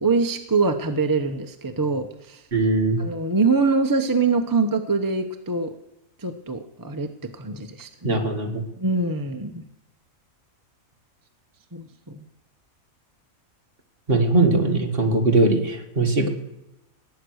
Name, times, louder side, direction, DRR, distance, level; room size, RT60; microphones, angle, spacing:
voice 1, 0.0-2.4 3.0-5.8 6.2-8.2 8.8-9.6 11.7-12.2, right 4 dB, 20° right, 6 dB, 0.8 m, -24 dB
voice 2, 2.5-3.0 8.0-8.6 14.1-16.3, right 2 dB, 40° right, 3 dB, 2.2 m, -20 dB
18.5 x 9.3 x 6.4 m, 0.90 s
omnidirectional pair, 1.5 m